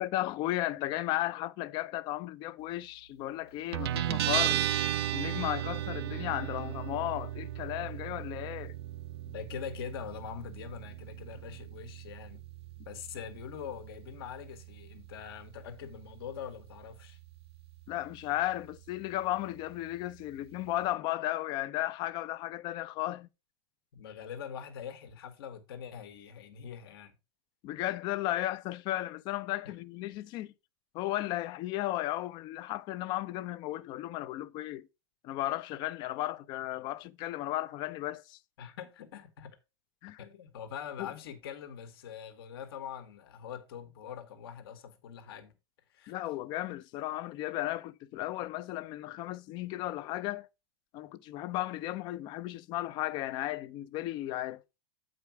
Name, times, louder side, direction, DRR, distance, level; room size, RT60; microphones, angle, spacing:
voice 1, 0.0-4.7 5.1-8.7 17.9-23.3 27.6-30.5 30.9-34.9 35.2-38.4 40.0-40.2 41.0-41.1 46.1-50.5 50.9-54.6, left 15 dB, 35° left, 0.5 m, -35 dB
Guitar, 3.7-20.9, right 12 dB, 75° right, 0.5 m, -37 dB
voice 2, 9.3-12.4 12.8-17.2 23.9-27.1 29.6-29.7 38.6-39.6 40.2-45.5 45.9-46.1, left 8 dB, 65° left, 1.5 m, -43 dB
8.2 x 5.0 x 4.6 m
supercardioid pair, 145°, 13 cm